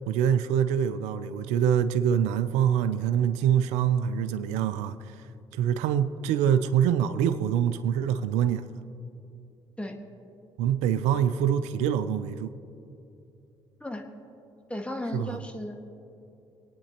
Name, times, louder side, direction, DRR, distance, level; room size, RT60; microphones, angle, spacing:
voice 1, 0.1-5.1 5.5-8.8 10.6-12.5 15.1-15.4, right 9 dB, 85° right, 12 dB, 0.5 m, -25 dB
voice 2, 14.7-15.8, left 1 dB, 10° left, 3 dB, 1.6 m, -35 dB
24.5 x 9.4 x 2.9 m, 2.7 s
supercardioid pair, 60°, 12 cm